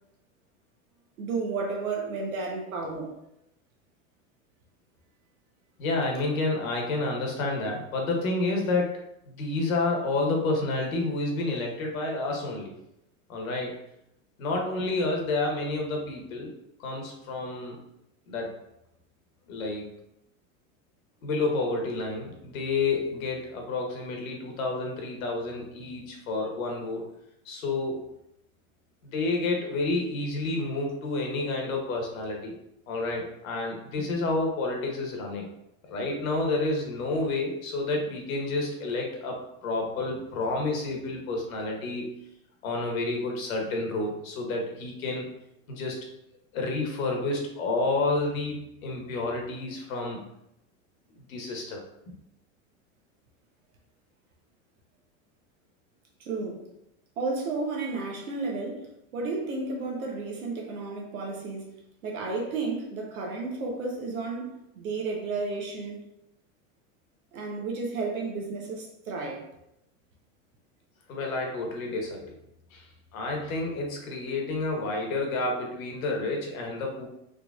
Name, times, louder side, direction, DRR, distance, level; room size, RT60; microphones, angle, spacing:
voice 1, 1.2-3.1 56.2-56.7 57.2-61.7 62.0-66.0 67.3-69.5, right 3 dB, 85° right, 0 dB, 1.0 m, -32 dB
voice 2, 5.8-12.7 13.3-13.7 14.4-16.5 16.8-17.8 18.3-18.5 19.5-19.8 21.2-27.0 27.4-28.0 29.0-32.5 32.9-35.5 35.9-42.1 42.6-45.3 45.7-46.0 46.5-50.2 51.3-51.8 71.1-72.3 72.7-72.9 73.1-77.1, left 2 dB, 80° left, 1 dB, 1.1 m, -29 dB
3.8 x 3.1 x 2.4 m, 0.81 s
hypercardioid pair, 100°, 41 cm